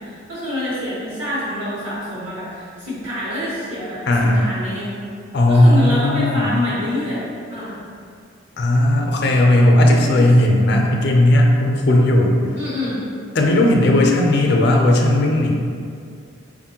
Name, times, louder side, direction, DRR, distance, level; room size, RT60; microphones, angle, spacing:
voice 1, 0.0-4.9 5.5-7.7 9.8-10.3 12.5-13.1, left 1 dB, 85° right, -12 dB, 1.2 m, -27 dB
voice 2, 4.1-4.5 5.3-6.5 8.6-12.4 13.4-15.5, left 1 dB, 55° left, 1 dB, 0.5 m, -15 dB
5.0 x 2.5 x 2.8 m, 2.3 s
head